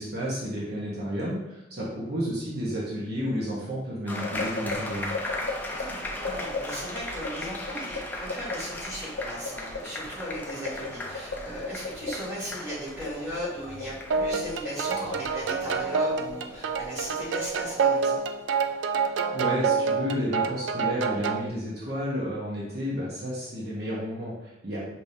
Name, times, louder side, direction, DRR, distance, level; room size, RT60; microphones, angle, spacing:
voice 1, 0.0-5.1 19.3-24.9, equal, 55° right, -6 dB, 1.0 m, -31 dB
sound 1, 4.1-17.2, left 3 dB, 70° left, 0.7 m, -39 dB
sound 2, 4.1-19.0, left 1 dB, 10° left, 0.4 m, -39 dB
voice 2, 5.8-18.2, equal, 15° right, -9 dB, 1.5 m, -37 dB
sound 3, 14.1-21.5, right 5 dB, 80° right, 0.3 m, -27 dB
4.9 x 2.9 x 2.7 m, 0.91 s
head